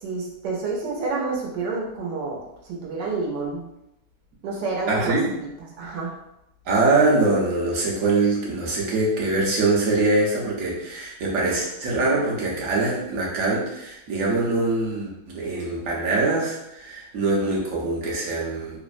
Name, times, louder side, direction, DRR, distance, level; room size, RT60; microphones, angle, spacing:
voice 1, 0.0-2.4 2.7-3.6 4.4-6.1, right 3 dB, 85° right, -2 dB, 1.3 m, -29 dB
voice 2, 4.9-5.3 6.6-18.8, right 2 dB, 60° right, -4 dB, 1.0 m, -23 dB
3.2 x 2.0 x 2.4 m, 0.86 s
omnidirectional pair, 1.9 m